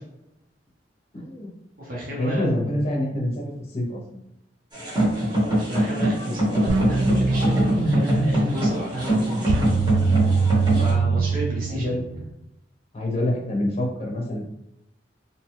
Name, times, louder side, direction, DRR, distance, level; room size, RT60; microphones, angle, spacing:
voice 1, 1.1-1.5 2.1-4.2 7.7-8.5 9.9-10.0 11.0-11.2 11.7-12.2 12.9-14.5, equal, 35° left, -1 dB, 0.6 m, -26 dB
voice 2, 1.8-2.5 5.7-9.6 10.0-10.3 10.8-12.0, equal, 55° right, -5 dB, 0.9 m, -33 dB
sound 1, 4.7-10.9, equal, 25° right, 1.0 m, -24 dB
sound 2, 6.7-12.3, right 4 dB, 80° right, 0.3 m, -23 dB
2.8 x 2.2 x 2.9 m, 0.83 s
head